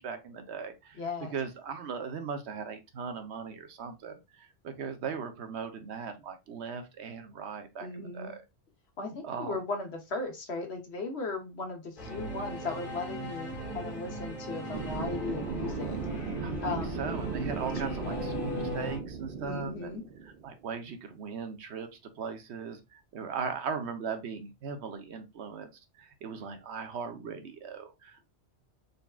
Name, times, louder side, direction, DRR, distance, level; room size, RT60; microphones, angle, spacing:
voice 1, 0.0-1.0 1.3-8.4 9.2-9.6 16.4-19.9 20.4-21.9 22.2-25.7 26.0-28.2, right 6 dB, 75° right, 1.0 m, -38 dB
voice 2, 1.0-1.3 7.8-8.3 9.0-16.0 16.6-17.1 17.9-18.3 19.4-20.0, left 3 dB, 70° left, 1.2 m, -37 dB
Singing / Musical instrument, 12.0-19.0, equal, 45° left, 1.5 m, -39 dB
sound 1, 14.7-20.6, right 5 dB, 55° right, 0.7 m, -37 dB
4.0 x 3.5 x 2.3 m
omnidirectional pair, 1.2 m